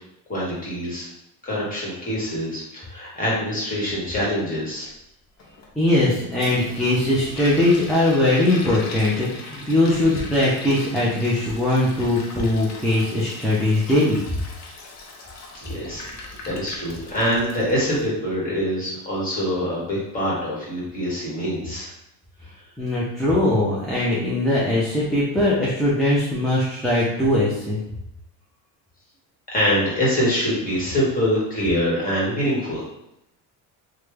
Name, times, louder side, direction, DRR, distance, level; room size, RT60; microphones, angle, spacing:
voice 1, 0.3-1.1 1.4-4.9 15.6-21.9 29.5-32.9, equal, 20° left, -7 dB, 1.5 m, -24 dB
Toilet flush, 5.4-18.1, left 2 dB, 45° left, 0.7 m, -39 dB
voice 2, 5.7-14.2 22.8-27.8, left 1 dB, ahead, -9 dB, 0.6 m, -20 dB
3.1 x 2.3 x 3.2 m, 0.82 s
cardioid pair, 130°, 37 cm